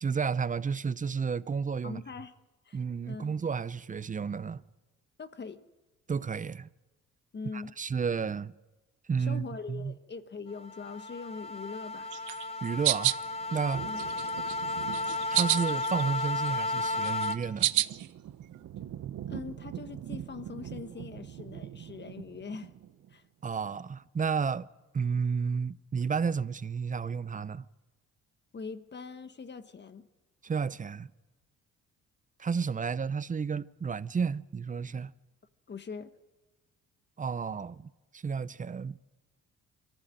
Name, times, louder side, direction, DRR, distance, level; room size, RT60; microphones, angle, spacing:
voice 1, 0.0-2.0 2.7-4.6 6.1-6.7 7.5-8.5 9.1-9.9 12.6-13.1 13.5-13.9 15.3-17.7 23.4-24.7 24.9-27.7 30.4-31.1 32.4-35.1 37.2-39.0, right 6 dB, 25° right, 0.6 m, -32 dB
voice 2, 1.8-2.3 2.7-2.8 3.1-3.3 5.2-5.6 7.3-7.7 9.2-12.1 13.8-14.0 19.3-22.7 23.1-23.2 28.5-30.1 35.7-36.1, left 5 dB, 35° left, 1.4 m, -42 dB
sound 1, 10.5-17.4, left 2 dB, 20° left, 1.4 m, -33 dB
sound 2, 12.1-13.2 13.7-14.5 14.9-16.0 16.3-18.1, right 16 dB, 80° right, 0.6 m, -29 dB
sound 3, 13.0-23.1, right 10 dB, 65° right, 1.0 m, -44 dB
23.5 x 15.0 x 9.0 m
cardioid pair, 90°, 30 cm